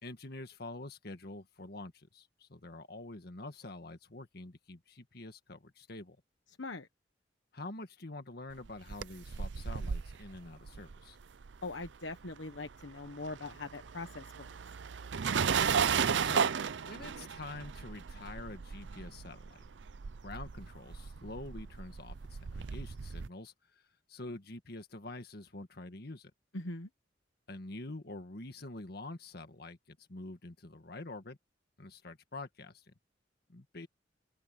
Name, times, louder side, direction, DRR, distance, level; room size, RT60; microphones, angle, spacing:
voice 1, 0.0-6.2 7.5-11.2 16.2-16.5 16.8-19.7 20.2-23.8 24.1-26.3 27.5-31.4 31.8-32.9 33.5-33.9, left 2 dB, 60° left, 1.7 m, -46 dB
sound 1, 8.6-12.3 12.6-23.3, right 6 dB, 75° right, 0.5 m, -35 dB
voice 2, 11.6-14.5 26.5-26.9, left 2 dB, 90° left, 1.3 m, -42 dB
open air
head